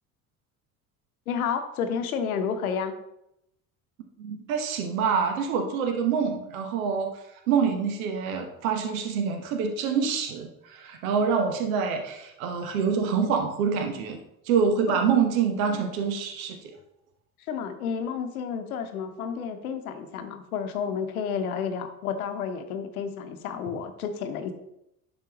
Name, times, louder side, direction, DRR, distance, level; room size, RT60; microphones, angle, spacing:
voice 1, 1.3-3.0 14.9-15.0 17.5-24.5, left 6 dB, 75° left, 8 dB, 0.9 m, -31 dB
voice 2, 4.2-7.1 7.5-14.2 14.5-16.6, right 6 dB, 70° right, 4 dB, 1.0 m, -26 dB
10.5 x 4.1 x 2.9 m, 0.82 s
figure-of-eight pair, 60°, 43 cm